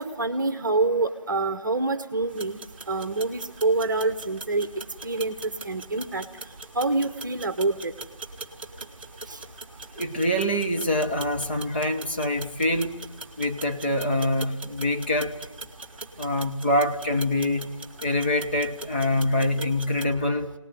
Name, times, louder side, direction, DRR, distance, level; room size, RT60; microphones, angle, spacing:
voice 1, 0.0-4.7 5.0-5.3 5.6-6.2 6.7-7.9 9.3-9.4, right 3 dB, 35° right, 1.1 m, -26 dB
sound 1, 2.3-20.0, right 3 dB, 20° right, 1.3 m, -42 dB
voice 2, 9.9-13.0 13.4-15.4 16.2-17.7 18.0-20.5, left 1 dB, 20° left, 1.0 m, -25 dB
25.0 x 19.0 x 9.4 m
figure-of-eight pair, 165°, 17 cm